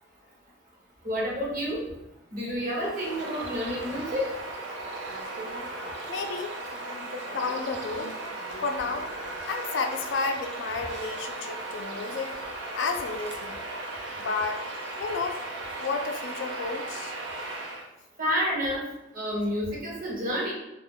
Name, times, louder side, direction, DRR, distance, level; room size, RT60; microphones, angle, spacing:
voice 1, 1.0-1.8 2.3-4.3 18.2-18.8 19.1-20.5, equal, 50° right, -3 dB, 0.8 m, -29 dB
Bird vocalization bird call bird song, 2.6-17.9, right 2 dB, 75° right, 0.5 m, -37 dB
voice 2, 6.1-8.1 8.6-9.1 9.5-12.3 12.7-13.6 14.2-14.6 15.0-15.4 15.8-17.1, left 4 dB, 70° left, 6 dB, 0.4 m, -32 dB
2.4 x 2.2 x 3.6 m, 0.93 s
head